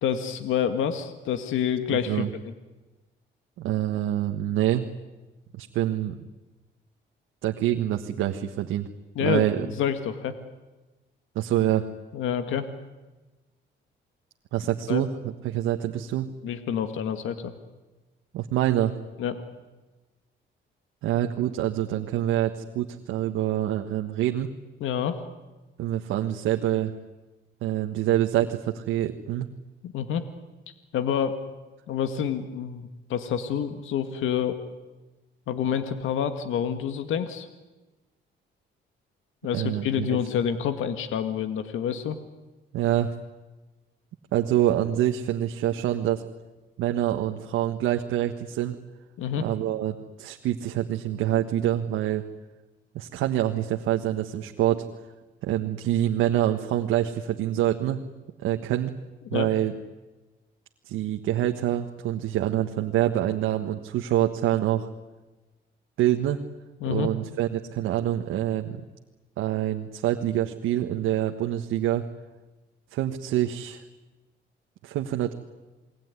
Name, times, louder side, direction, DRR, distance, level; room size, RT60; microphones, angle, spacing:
voice 1, 0.0-2.5 9.2-10.4 12.1-12.7 14.9-15.0 16.4-17.5 19.2-19.4 24.8-25.2 29.8-30.3 30.9-31.4 31.9-34.6 35.5-37.5 39.4-42.2 49.2-49.5 59.3-59.5 66.8-67.1, left 8 dB, 85° left, 8 dB, 1.9 m, -28 dB
voice 2, 1.9-2.3 3.6-4.9 5.5-6.2 7.4-8.9 9.2-9.7 11.3-11.8 14.5-16.3 18.3-18.9 21.0-24.5 25.8-26.9 27.6-29.5 39.5-40.1 42.7-43.1 44.3-46.2 46.8-48.8 49.4-52.2 52.9-54.8 55.4-58.0 58.4-58.9 59.3-59.7 60.8-64.9 66.0-66.4 66.9-68.8 69.4-72.0 72.9-73.8 74.8-75.3, right 12 dB, 90° right, 4 dB, 1.5 m, -26 dB
28.5 x 21.0 x 9.7 m, 1.2 s
cardioid pair, 90°, 20 cm